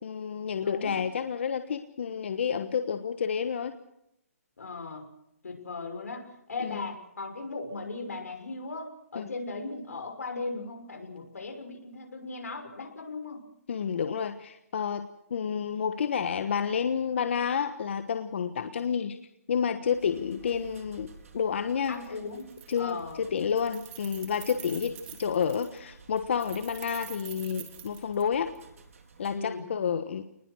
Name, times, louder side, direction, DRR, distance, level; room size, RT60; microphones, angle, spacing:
voice 1, 0.0-3.7 6.6-6.9 9.1-9.3 13.7-19.2 19.5-21.1 21.3-22.0 22.7-24.9 25.2-28.5 29.2-30.2, left 7 dB, 50° left, 9 dB, 1.3 m, -30 dB
voice 2, 0.5-1.0 4.6-5.1 5.4-13.4 18.7-18.8 21.9-23.2 24.6-24.9 29.3-29.6, left 3 dB, 85° left, 6 dB, 6.1 m, -38 dB
sound 1, 19.8-29.4, right 4 dB, 65° right, 4.6 m, -53 dB
Keys jangling, 21.9-22.1 22.4-23.1 23.4-25.8 26.3-28.6, right 13 dB, 15° right, 2.0 m, -46 dB
27.5 x 20.5 x 6.3 m, 0.81 s
hypercardioid pair, 165°, 8 cm